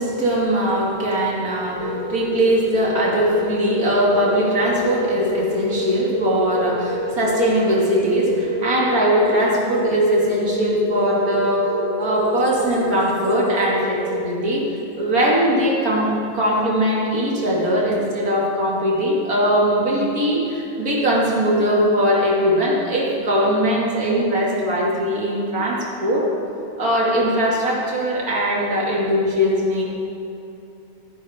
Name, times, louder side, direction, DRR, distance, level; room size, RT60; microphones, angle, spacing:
voice 1, 0.0-14.6 15.0-26.3 26.8-29.9, equal, 85° right, -4 dB, 2.8 m, -20 dB
sound 1, 1.8-14.9, left 1 dB, 70° left, 3.5 m, -27 dB
17.5 x 10.5 x 3.6 m, 2.8 s
omnidirectional pair, 1.5 m